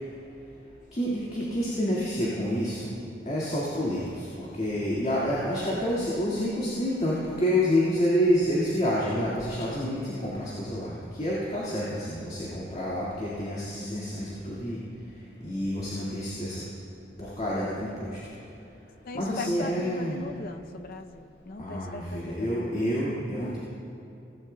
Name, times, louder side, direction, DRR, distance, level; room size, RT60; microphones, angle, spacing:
voice 1, 0.9-2.9 3.3-14.8 15.4-16.6 17.2-18.2 19.1-20.2 21.6-23.6, equal, 40° left, -7 dB, 1.9 m, -28 dB
voice 2, 19.1-22.8, left 3 dB, 55° left, 8 dB, 0.6 m, -39 dB
17.0 x 15.5 x 2.3 m, 2.7 s
head